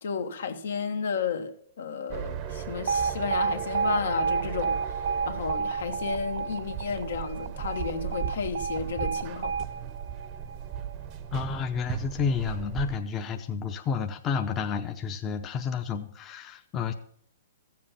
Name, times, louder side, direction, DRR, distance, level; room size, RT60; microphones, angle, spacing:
voice 1, 0.0-9.7, left 6 dB, 75° left, 1.4 m, -33 dB
sound 1, 2.1-13.0, right 9 dB, 30° right, 0.8 m, -37 dB
Alarm, 2.9-10.9, right 5 dB, 70° right, 0.4 m, -31 dB
voice 2, 11.3-16.9, left 6 dB, 20° left, 0.7 m, -30 dB
14.5 x 7.5 x 5.7 m
hypercardioid pair, 155°, 0 cm